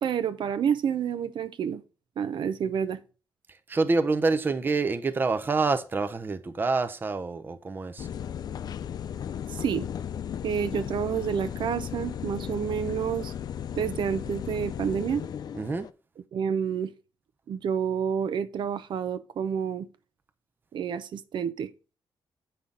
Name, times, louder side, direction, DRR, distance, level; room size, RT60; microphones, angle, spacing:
voice 1, 0.0-1.8 2.2-3.0 9.5-9.8 10.4-13.3 13.8-15.2 16.3-16.9 17.5-19.9 20.7-21.7, right 8 dB, 70° right, 0.6 m, -29 dB
voice 2, 3.7-8.1 15.5-15.9, right 3 dB, 25° right, 0.6 m, -27 dB
sound 1, 8.0-15.9, left 9 dB, 55° left, 0.4 m, -35 dB
8.4 x 5.6 x 3.8 m
wide cardioid pair, 155°, 8 cm